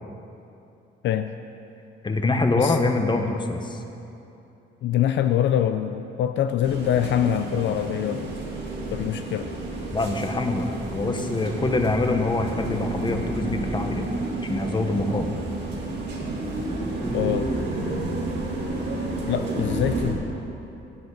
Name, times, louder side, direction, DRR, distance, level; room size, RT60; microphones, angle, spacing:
voice 1, 2.0-3.8 9.9-14.1 14.5-15.3, left 2 dB, 25° left, 5 dB, 1.0 m, -24 dB
voice 2, 4.8-8.4 8.9-9.5 17.1-17.5 19.3-20.2, left 10 dB, 70° left, 8 dB, 0.5 m, -24 dB
sound 1, 6.6-20.1, right 2 dB, 60° right, 2.2 m, -30 dB
16.5 x 7.9 x 4.0 m, 2.8 s
cardioid pair, 90°, 20 cm